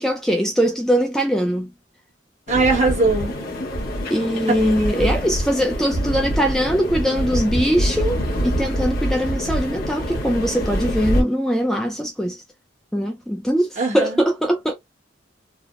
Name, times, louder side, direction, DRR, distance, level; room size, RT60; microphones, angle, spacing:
voice 1, 0.0-1.7 4.1-12.4 12.9-13.7 13.9-14.7, equal, 5° left, 0.4 m, -21 dB
sound 1, 2.5-11.2, equal, 55° left, 1.0 m, -25 dB
voice 2, 2.5-3.3 13.8-14.2, right 3 dB, 40° right, 1.2 m, -20 dB
3.3 x 2.0 x 2.4 m
head